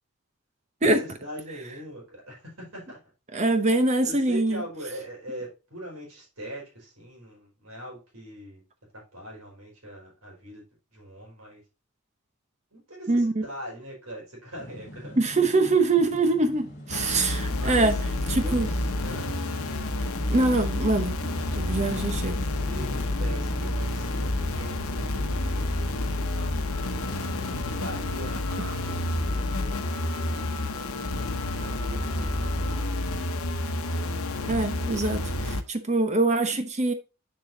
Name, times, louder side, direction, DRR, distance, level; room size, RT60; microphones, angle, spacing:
voice 1, 0.8-3.0 4.0-8.6 8.9-10.6 10.9-11.6 12.7-15.1 17.5-19.3 22.0-26.8 27.6-30.8 31.5-33.1, equal, 80° right, 4.8 m, -42 dB
voice 2, 3.3-4.6 13.1-13.5 15.2-18.0 18.3-18.7 20.3-21.2 21.5-22.3 34.4-36.9, right 2 dB, 30° right, 0.8 m, -24 dB
sound 1, 14.6-23.8, left 1 dB, 35° left, 3.5 m, -43 dB
sound 2, 16.9-35.6, left 1 dB, 80° left, 1.0 m, -29 dB
Wind instrument woodwind instrument, 26.7-32.9, left 5 dB, 15° left, 0.7 m, -45 dB
7.5 x 6.9 x 2.7 m
head